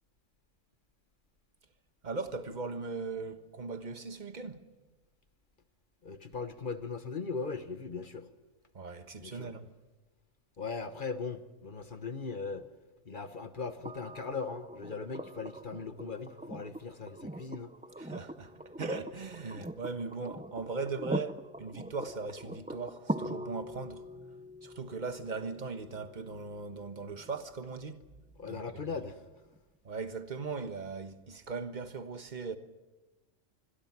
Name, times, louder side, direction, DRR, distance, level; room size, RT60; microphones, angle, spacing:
voice 1, 2.0-4.6 8.7-9.7 18.0-24.0 24.6-28.0 28.4-28.8 29.8-32.6, right 4 dB, 35° right, 1.4 m, -39 dB
voice 2, 6.0-8.3 9.2-9.5 10.6-12.6 13.1-17.7 28.4-29.2, left 4 dB, 40° left, 1.3 m, -39 dB
sound 1, 13.9-27.8 29.5-29.6, right 1 dB, 10° right, 0.3 m, -42 dB
26.0 x 22.0 x 6.1 m
omnidirectional pair, 1.3 m